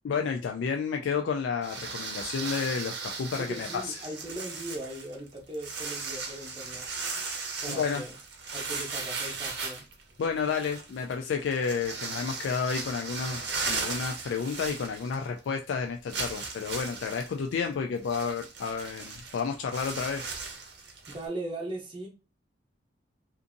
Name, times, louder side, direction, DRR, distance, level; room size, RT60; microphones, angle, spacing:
voice 1, 0.0-4.0 7.8-8.0 10.2-20.3, left 5 dB, 80° left, 4 dB, 0.3 m, -31 dB
sound 1, 1.6-15.4 15.7-15.8 16.1-21.3, right 4 dB, 60° right, 0.7 m, -37 dB
voice 2, 3.3-6.9 7.6-8.1 8.5-9.9 21.1-22.1, right 1 dB, 25° right, 0 dB, 0.7 m, -39 dB
2.5 x 2.5 x 2.6 m, 0.32 s
head